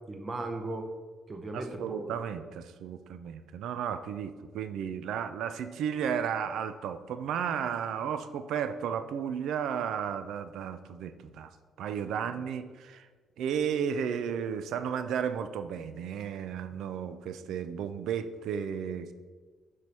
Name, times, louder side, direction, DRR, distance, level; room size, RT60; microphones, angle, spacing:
voice 1, 0.1-0.9 1.3-2.1, right 2 dB, 30° right, 5 dB, 0.8 m, -36 dB
voice 2, 1.5-11.5 11.8-13.1 13.4-19.1, right 8 dB, 80° right, 10 dB, 0.4 m, -33 dB
4.7 x 4.4 x 5.4 m, 1.5 s
cardioid pair, 90°, 0 cm